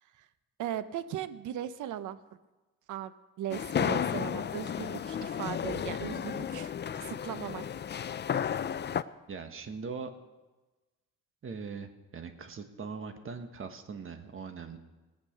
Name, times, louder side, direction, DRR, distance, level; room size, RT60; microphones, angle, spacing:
voice 1, 0.6-2.2 2.9-7.6, right 11 dB, 80° right, 14 dB, 0.8 m, -38 dB
sound 1, 3.5-9.0, left 8 dB, 35° left, 0.5 m, -33 dB
voice 2, 9.3-10.1 11.4-14.8, right 5 dB, 45° right, 7 dB, 1.5 m, -41 dB
18.5 x 8.3 x 6.6 m, 1.2 s
cardioid pair, 90°, 30 cm